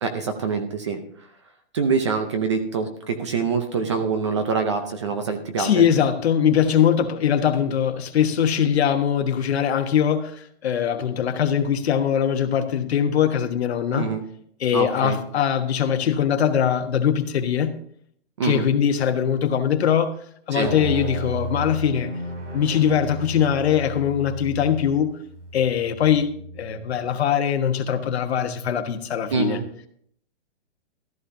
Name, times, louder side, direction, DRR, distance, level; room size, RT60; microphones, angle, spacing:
voice 1, 0.0-1.0 1.7-5.8 13.9-14.2 14.7-15.2 18.4-18.6 20.5-20.7 29.3-29.6, right 5 dB, 25° right, 0.6 m, -25 dB
voice 2, 5.6-14.1 14.6-17.8 18.4-20.1 20.5-22.1 22.5-25.1 25.5-29.6, left 8 dB, 60° left, 1.3 m, -22 dB
sound 1, 20.6-27.1, right 1 dB, 85° right, 3.9 m, -33 dB
14.5 x 13.0 x 2.7 m
hypercardioid pair, 175°, 36 cm